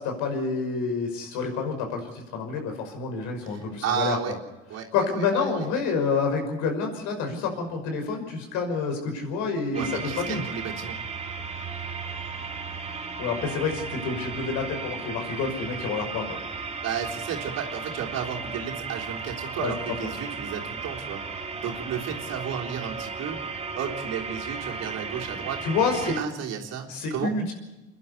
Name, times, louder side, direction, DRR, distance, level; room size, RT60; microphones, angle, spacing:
voice 1, 0.0-4.3 4.9-9.9 10.2-10.4 13.2-16.3 19.6-19.7 25.6-26.2 26.9-27.5, left 4 dB, 65° left, 4 dB, 5.9 m, -28 dB
voice 2, 3.4-4.3 4.7-5.7 9.7-11.0 16.8-21.2 21.6-23.4 23.7-25.6 26.0-27.3, right 8 dB, 50° right, -1 dB, 3.6 m, -33 dB
sound 1, 9.7-26.2, right 4 dB, 20° right, 2.7 m, -35 dB
29.5 x 11.0 x 8.4 m, 1.1 s
hypercardioid pair, 65°, 32 cm